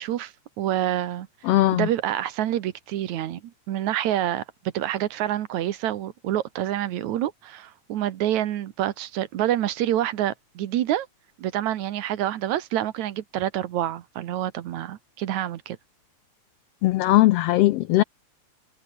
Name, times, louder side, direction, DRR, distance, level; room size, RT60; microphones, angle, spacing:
voice 1, 0.0-3.4 3.7-4.4 4.7-11.1 11.4-15.8, right 12 dB, 75° right, 2.5 m, -27 dB
voice 2, 1.4-1.9 16.8-18.0, left 17 dB, 90° left, 1.3 m, -19 dB
omnidirectional pair, 3.4 m